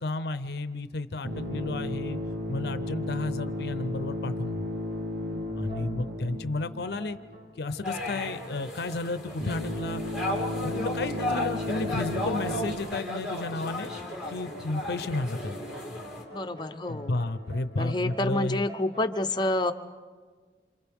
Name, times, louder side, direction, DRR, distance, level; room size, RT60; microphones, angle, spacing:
voice 1, 0.0-2.2 2.5-4.6 5.6-7.2 7.6-10.0 10.6-13.9 14.3-15.6 16.9-18.6, left 2 dB, 60° left, 12 dB, 0.6 m, -32 dB
sound 1, 1.2-7.6 9.4-12.8, left 1 dB, 60° right, 1.6 m, -34 dB
sound 2, 5.7-6.5 7.0-19.2, right 1 dB, 45° right, 4.8 m, -47 dB
sound 3, 7.8-16.2, left 1 dB, 5° right, 2.7 m, -35 dB
voice 2, 16.3-17.1 17.8-19.7, left 2 dB, 25° left, 6 dB, 0.7 m, -28 dB
28.0 x 27.0 x 3.6 m, 1.5 s
head